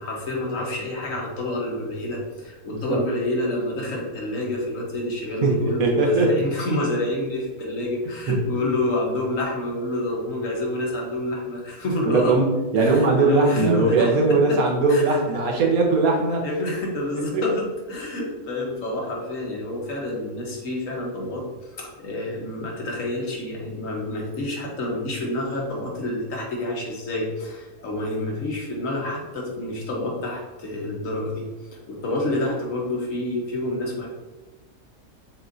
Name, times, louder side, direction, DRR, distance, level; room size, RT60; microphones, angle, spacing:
voice 1, 0.0-12.4 12.8-14.6 14.9-15.2 16.4-21.5 21.7-31.5 31.9-34.1, left 1 dB, 65° left, -2 dB, 1.4 m, -28 dB
voice 2, 5.8-6.3 8.3-8.4 12.0-16.4 17.3-17.4, right 3 dB, 85° right, 0 dB, 1.3 m, -20 dB
6.9 x 2.6 x 2.6 m, 1.2 s
omnidirectional pair, 1.5 m